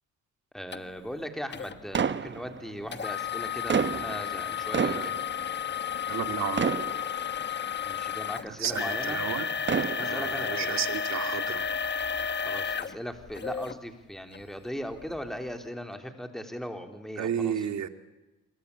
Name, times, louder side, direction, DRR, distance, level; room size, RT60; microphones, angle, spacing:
voice 1, 0.5-5.3 7.8-9.2 10.0-10.8 12.5-17.6, equal, ahead, 6 dB, 3.7 m, -38 dB
sound 1, 0.7-0.8 1.5-1.7 2.9-13.8 14.3-14.4 15.0-15.2, left 7 dB, 35° left, 1.5 m, -32 dB
sound 2, 1.9-2.9 3.5-6.3 6.6-7.6 8.3-8.4 9.4-10.5, right 6 dB, 40° right, 1.2 m, -30 dB
voice 2, 6.1-6.7 8.5-9.5 10.0-11.6 17.2-17.9, right 9 dB, 65° right, 9 dB, 2.3 m, -32 dB
27.5 x 24.0 x 8.7 m, 1.1 s
cardioid pair, 90°, 30 cm